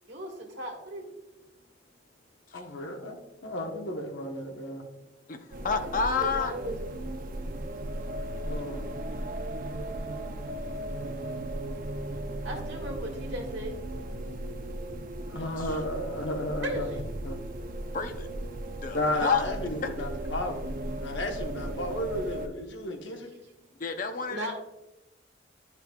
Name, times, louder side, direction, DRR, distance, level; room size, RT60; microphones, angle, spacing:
voice 1, 0.1-1.0 5.7-6.8 12.4-13.7 16.6-17.0 24.3-24.5, right 1 dB, 70° right, 1.7 m, -36 dB
voice 2, 2.5-3.2 3.4-4.8 8.5-8.8 15.2-16.9 17.2-17.4 18.9-20.7 21.0-23.3, left 1 dB, 70° left, 1.1 m, -33 dB
sound 1, 5.5-22.5, right 1 dB, 45° right, 0.5 m, -36 dB
voice 3, 5.6-6.5 15.6-15.7 17.9-18.3 18.8-19.4 23.8-24.5, left 5 dB, 45° left, 0.6 m, -29 dB
11.0 x 5.5 x 2.3 m
head